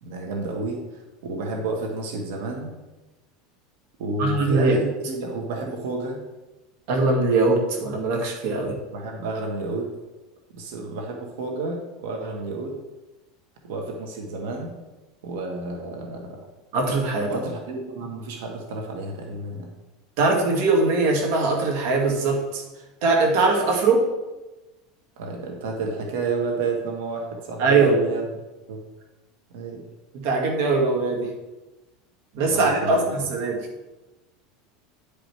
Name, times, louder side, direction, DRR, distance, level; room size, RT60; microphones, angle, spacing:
voice 1, 0.0-2.7 4.0-6.2 8.9-9.9 10.5-12.9 13.6-14.8 15.2-16.4 17.3-19.7 25.2-28.3 28.7-28.8 29.5-29.8 32.3-33.3, right 3 dB, 80° right, 1 dB, 1.6 m, -30 dB
voice 2, 4.2-4.8 6.9-8.8 16.7-17.3 20.2-22.6 23.0-24.1 27.6-27.9 30.1-31.3 32.4-33.7, right 3 dB, 60° right, 1 dB, 2.0 m, -21 dB
9.9 x 5.1 x 4.7 m, 1.1 s
supercardioid pair, 155°, 0 cm